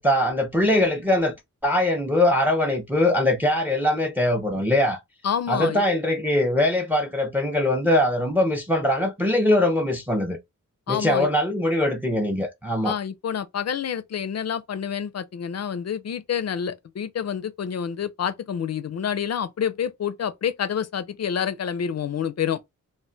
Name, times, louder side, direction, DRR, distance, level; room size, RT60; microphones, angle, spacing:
voice 1, 0.0-1.3 1.6-5.0 5.5-10.4 10.9-13.0, left 1 dB, 5° right, 0.5 m, -22 dB
voice 2, 5.2-5.8 10.9-11.3 12.8-22.7, left 8 dB, 55° left, 0.4 m, -28 dB
2.2 x 2.1 x 3.8 m
wide cardioid pair, 75°, 32 cm